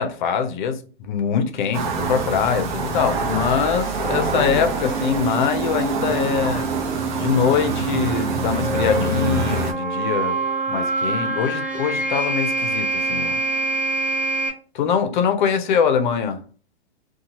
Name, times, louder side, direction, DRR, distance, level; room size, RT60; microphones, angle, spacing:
voice 1, 0.0-6.7 7.2-10.4 10.7-13.4 14.7-16.4, left 7 dB, 45° left, 0.6 m, -23 dB
sound 1, 1.7-9.7, right 3 dB, 45° right, 0.7 m, -26 dB
sound 2, 4.8-14.5, right 3 dB, 15° right, 0.3 m, -26 dB
Wind instrument woodwind instrument, 6.1-10.9 11.2-13.8, equal, 5° left, 1.4 m, -42 dB
2.7 x 2.2 x 2.9 m
hypercardioid pair, 145°, 32 cm